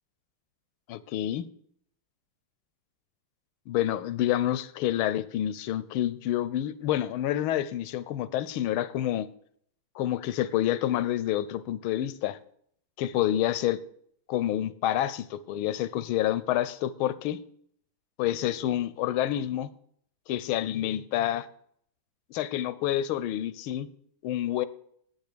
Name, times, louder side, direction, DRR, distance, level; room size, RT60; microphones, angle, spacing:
voice 1, 0.9-1.5 3.7-9.3 9.9-12.4 13.0-13.8 14.3-17.4 18.2-19.7 20.3-21.5 22.3-23.9 24.2-24.7, left 12 dB, 90° left, 16 dB, 1.5 m, -28 dB
10.5 x 8.8 x 6.8 m, 0.66 s
omnidirectional pair, 2.2 m